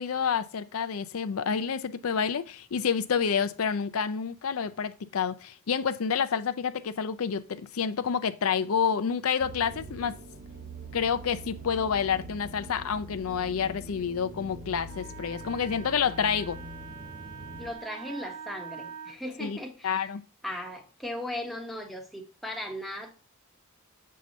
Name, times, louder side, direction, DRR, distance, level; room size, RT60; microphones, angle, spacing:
voice 1, 0.0-10.2 10.9-16.6 19.4-19.6 19.8-20.2, left 6 dB, 90° left, 0.5 m, -28 dB
sound 1, 9.4-17.7, right 1 dB, 40° right, 0.6 m, -43 dB
Wind instrument woodwind instrument, 14.8-19.2, right 6 dB, 80° right, 0.6 m, -44 dB
voice 2, 17.6-20.1 20.4-23.1, left 1 dB, ahead, 1.2 m, -37 dB
7.5 x 2.8 x 5.3 m
head